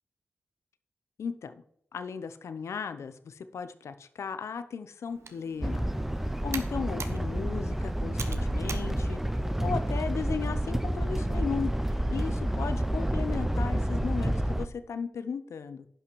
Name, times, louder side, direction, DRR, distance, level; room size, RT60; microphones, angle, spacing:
voice 1, 1.2-1.5 1.9-5.9 6.2-11.7 12.1-15.9, left 6 dB, 80° left, 11 dB, 0.8 m, -36 dB
Computer keyboard, 5.1-10.2, right 5 dB, 70° right, 1.1 m, -44 dB
sound 1, 5.6-14.7, right 1 dB, 5° right, 0.6 m, -29 dB
10.5 x 5.7 x 4.7 m, 0.68 s
wide cardioid pair, 85°, 5 cm